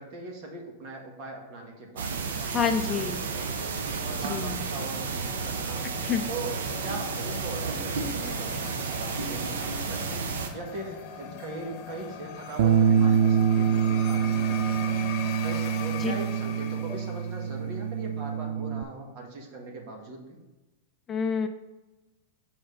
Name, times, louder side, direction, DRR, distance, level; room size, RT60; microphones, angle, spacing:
voice 1, 0.0-3.6 4.0-5.8 6.3-10.2 10.5-15.1 15.4-20.4, right 2 dB, 50° right, 1 dB, 1.8 m, -40 dB
sound 1, 2.0-10.5, right 5 dB, 85° right, 0.9 m, -32 dB
voice 2, 2.5-3.3 4.2-4.7 6.0-6.2 16.0-16.1 21.1-21.5, left 6 dB, 25° left, 7 dB, 0.5 m, -28 dB
sound 2, 3.1-17.8, left 7 dB, 50° left, 1.0 m, -41 dB
Bass guitar, 12.6-18.8, right 8 dB, 65° right, 0.4 m, -25 dB
6.6 x 4.3 x 5.5 m, 1.1 s
hypercardioid pair, 125°, 0 cm